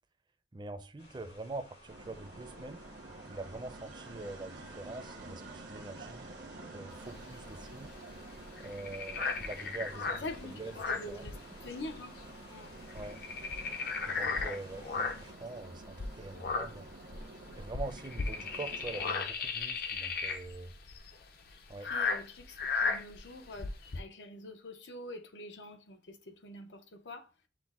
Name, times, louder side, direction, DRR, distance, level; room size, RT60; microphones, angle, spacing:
voice 1, 0.5-2.8 3.3-6.3 6.7-7.9 8.6-10.3 10.5-11.2 12.9-13.2 14.0-16.9 17.6-20.7 21.7-21.9, right 2 dB, 25° right, 0.4 m, -44 dB
sound 1, 1.0-15.3, left 1 dB, 75° left, 2.6 m, -58 dB
sound 2, 1.9-19.1, right 2 dB, 80° right, 0.9 m, -49 dB
sound 3, 6.9-11.9 12.2-12.4 12.7-15.4 15.9-24.0, left 4 dB, 55° left, 0.5 m, -36 dB
voice 2, 10.2-12.1 12.5-12.7 21.5-27.3, left 2 dB, 90° left, 0.7 m, -45 dB
6.0 x 2.2 x 3.5 m
head